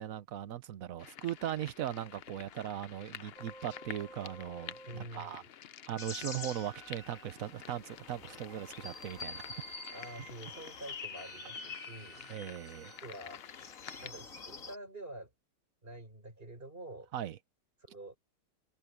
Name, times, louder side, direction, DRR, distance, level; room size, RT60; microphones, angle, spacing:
voice 1, 0.0-4.8 5.1-5.4 5.9-9.6 12.3-12.9 17.1-17.4, right 11 dB, 60° right, 1.1 m, -39 dB
sound 1, 1.0-14.1, left 9 dB, 85° left, 0.5 m, -51 dB
sound 2, 3.4-5.1 5.9-7.7 8.5-10.4 11.2-13.0 13.9-14.1, right 3 dB, 80° right, 3.4 m, -54 dB
voice 2, 4.9-5.5 9.9-12.3 13.0-13.4 14.0-15.3 15.8-17.1 17.8-18.2, right 1 dB, 30° right, 4.8 m, -47 dB
sound 3, 6.0-14.8, left 4 dB, 50° left, 2.2 m, -47 dB
omnidirectional pair, 1.9 m